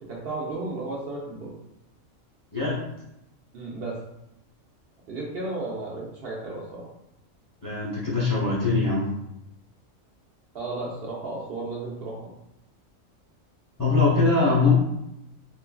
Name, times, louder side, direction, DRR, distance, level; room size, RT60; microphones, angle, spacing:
voice 1, 0.0-1.5 3.5-4.0 5.1-6.8 10.5-12.3, right 2 dB, 60° right, -4 dB, 0.7 m, -33 dB
voice 2, 7.6-9.1 13.8-14.7, left 3 dB, 35° left, -7 dB, 0.3 m, -22 dB
3.1 x 2.2 x 2.2 m, 0.85 s
omnidirectional pair, 1.4 m